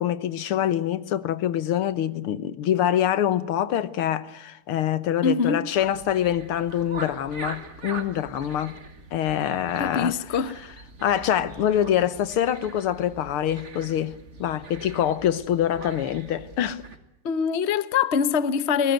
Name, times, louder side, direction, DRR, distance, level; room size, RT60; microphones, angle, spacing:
voice 1, 0.0-8.7 9.1-10.1 11.0-14.1 14.4-16.8, left 10 dB, 75° left, 2.0 m, -25 dB
voice 2, 5.2-5.7 9.8-10.6 17.2-18.9, left 6 dB, 45° left, 1.0 m, -23 dB
sound 1, 5.7-17.0, right 3 dB, 35° right, 2.3 m, -42 dB
23.5 x 19.5 x 9.1 m
omnidirectional pair, 2.4 m